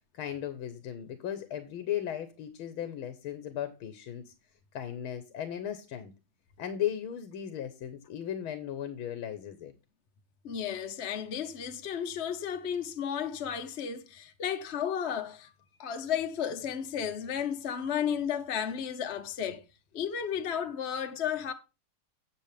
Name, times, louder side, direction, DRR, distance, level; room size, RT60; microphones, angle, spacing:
voice 1, 0.1-4.3 4.7-6.1 6.6-9.7, left 10 dB, 85° left, 1.9 m, -36 dB
voice 2, 10.4-15.5 15.8-19.6 19.9-21.5, left 8 dB, 45° left, 1.0 m, -33 dB
8.7 x 8.6 x 3.4 m
omnidirectional pair, 2.2 m